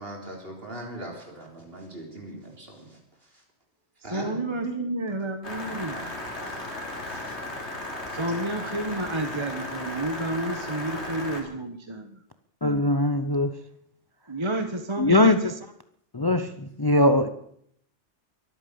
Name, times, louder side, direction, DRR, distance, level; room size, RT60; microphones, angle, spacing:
voice 1, 0.0-3.0 4.0-4.8 6.4-6.6 7.1-7.4 8.9-9.0, right 2 dB, 55° right, 1 dB, 4.3 m, -40 dB
voice 2, 4.1-6.1 8.1-12.2 14.3-15.5, right 1 dB, 25° right, 6 dB, 1.3 m, -30 dB
sound 1, 5.4-11.4, left 1 dB, 70° left, 3.5 m, -35 dB
voice 3, 12.6-13.5 15.0-15.5 16.1-17.3, left 1 dB, 25° left, 10 dB, 0.7 m, -21 dB
23.0 x 9.0 x 7.0 m, 0.70 s
omnidirectional pair, 1.2 m